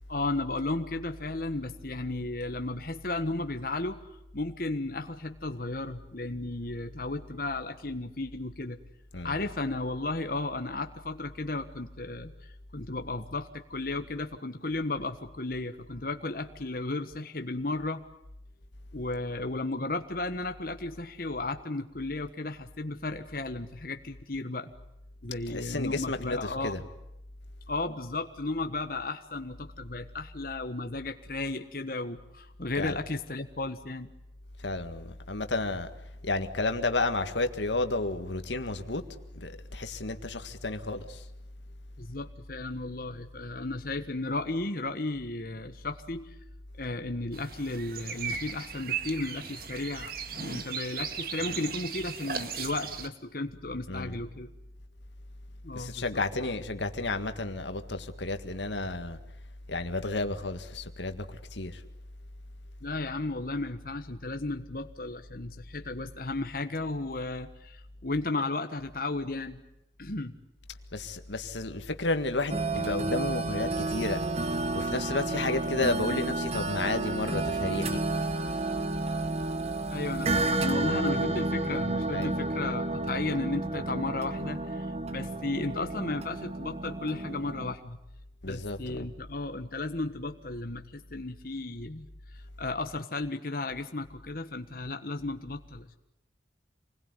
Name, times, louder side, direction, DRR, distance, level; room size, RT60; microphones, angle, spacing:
voice 1, 0.1-4.0 4.3-8.8 9.2-18.0 18.9-24.7 25.2-26.9 27.7-34.1 42.0-46.3 46.8-54.5 55.6-56.2 62.8-69.6 70.0-70.3 79.9-88.0 88.4-92.1 92.6-96.0, left 2 dB, 50° left, 1.4 m, -34 dB
voice 2, 25.5-26.8 32.7-33.0 34.6-35.9 36.2-39.0 39.4-41.2 53.9-54.1 55.7-59.2 59.7-61.3 61.5-61.8 70.9-74.2 74.7-78.0 82.1-82.4 88.4-89.0, left 2 dB, 80° left, 1.8 m, -32 dB
sound 1, 47.3-53.1, right 6 dB, 55° right, 1.9 m, -37 dB
sound 2, 72.5-87.7, right 2 dB, 35° right, 1.4 m, -31 dB
27.5 x 21.0 x 9.7 m
head